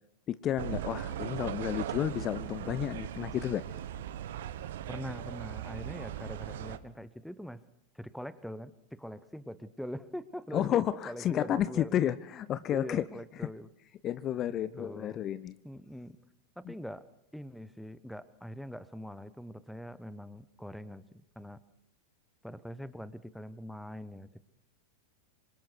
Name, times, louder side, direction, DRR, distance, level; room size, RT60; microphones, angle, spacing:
voice 1, 0.3-3.6 10.5-13.0 14.0-15.5 16.7-16.8, left 11 dB, 30° left, 15 dB, 0.8 m, -31 dB
sound 1, 0.6-6.8, right 11 dB, 55° right, 1.3 m, -39 dB
voice 2, 4.9-7.6 7.9-12.1 12.7-13.7 14.4-15.2 15.6-16.2 16.6-17.0 17.3-21.6 22.4-24.4, equal, ahead, 16 dB, 1.1 m, -43 dB
27.0 x 25.0 x 4.7 m, 0.81 s
figure-of-eight pair, 90°, 0 cm